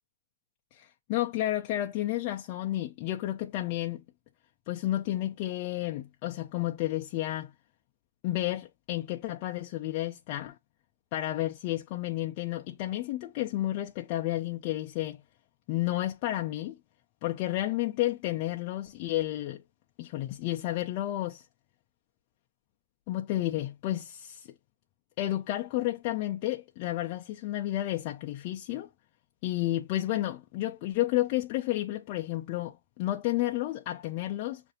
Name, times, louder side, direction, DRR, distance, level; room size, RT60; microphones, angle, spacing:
voice 1, 0.7-4.0 4.7-7.5 8.2-10.6 11.1-15.2 15.7-16.8 17.2-19.6 20.0-21.4 23.1-24.5 25.2-28.9 29.4-34.6, left 15 dB, 35° left, 0.4 m, -31 dB
6.4 x 2.5 x 2.7 m
hypercardioid pair, 130°, 0 cm